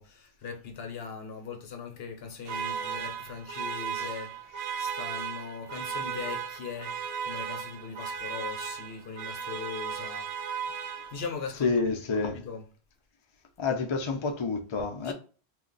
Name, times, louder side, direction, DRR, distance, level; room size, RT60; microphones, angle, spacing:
voice 1, 0.0-7.0 7.2-10.3 11.1-11.7 12.1-12.6 15.0-15.1, left 6 dB, 65° left, 0.8 m, -40 dB
sound 1, 2.4-11.5, right 7 dB, 65° right, 0.7 m, -36 dB
voice 2, 11.6-12.5 13.6-15.1, left 4 dB, 40° left, 0.4 m, -28 dB
2.4 x 2.2 x 3.8 m
omnidirectional pair, 1.1 m